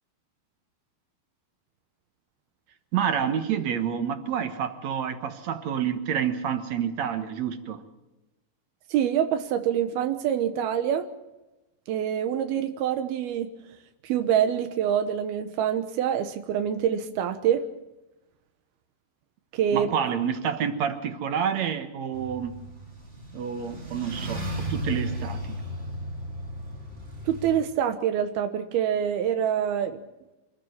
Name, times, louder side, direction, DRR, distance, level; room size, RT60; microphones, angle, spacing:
voice 1, 2.9-7.8 19.7-22.5 23.3-25.6, right 8 dB, 60° right, 9 dB, 2.1 m, -28 dB
voice 2, 8.9-11.1 11.9-13.5 14.0-17.7 19.5-19.9 27.3-30.0, right 9 dB, 85° right, 8 dB, 3.0 m, -25 dB
sound 1, 22.1-27.6, equal, 15° right, 3.1 m, -35 dB
26.5 x 13.5 x 9.0 m, 1.0 s
omnidirectional pair, 4.4 m